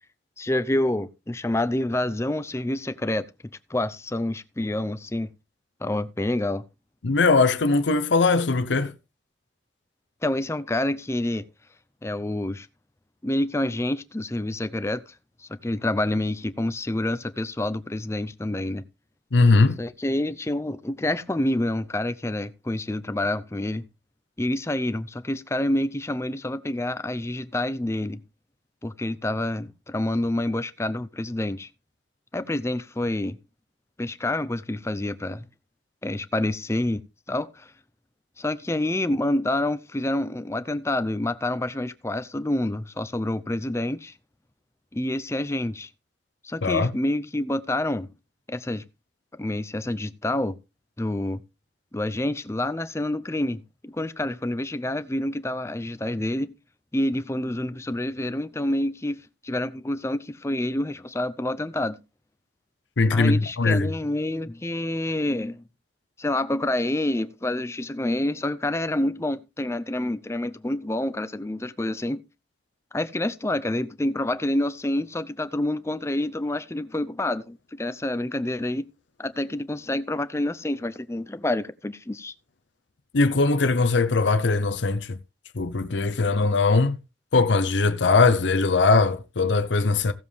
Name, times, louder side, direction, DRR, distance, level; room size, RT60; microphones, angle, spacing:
voice 1, 0.4-3.3 3.7-5.3 5.8-6.6 10.2-11.5 12.0-12.7 13.2-15.0 15.4-18.8 19.8-23.8 24.4-28.2 28.8-31.7 32.3-33.4 34.0-35.4 36.0-37.0 37.3-37.7 38.4-44.1 44.9-45.9 46.4-48.1 48.5-48.8 49.4-50.6 51.0-51.4 51.9-56.5 56.9-59.2 59.4-62.0 63.1-65.6 66.2-72.2 72.9-78.9 79.2-82.3, left 1 dB, 15° left, 0.6 m, -27 dB
voice 2, 7.0-8.9 19.3-19.8 46.6-46.9 63.0-63.9 83.1-85.2 85.5-87.0 87.3-90.1, left 3 dB, 85° left, 0.7 m, -20 dB
16.0 x 7.3 x 3.3 m
head